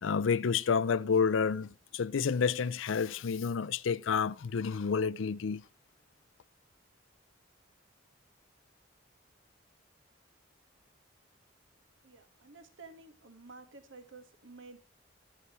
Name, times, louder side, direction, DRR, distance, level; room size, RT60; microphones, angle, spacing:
voice 1, 0.0-5.6, left 6 dB, 85° left, 0.5 m, -29 dB
voice 2, 12.0-14.8, right 3 dB, 80° right, 1.6 m, -52 dB
13.5 x 8.2 x 3.1 m
head